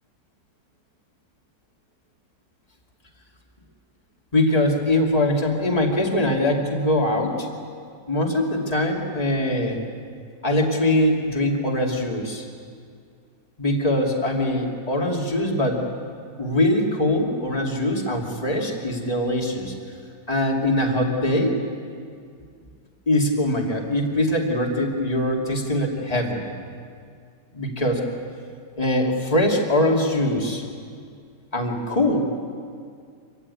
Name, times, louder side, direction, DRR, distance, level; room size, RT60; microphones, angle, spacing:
voice 1, 4.3-7.5 8.1-9.8 10.4-12.4 13.6-15.9 16.4-19.7 20.3-21.6 23.1-26.5 27.5-28.1 28.8-30.6 31.5-32.2, left 1 dB, 20° left, 0 dB, 2.6 m, -22 dB
25.5 x 16.0 x 9.7 m, 2.2 s
omnidirectional pair, 1.9 m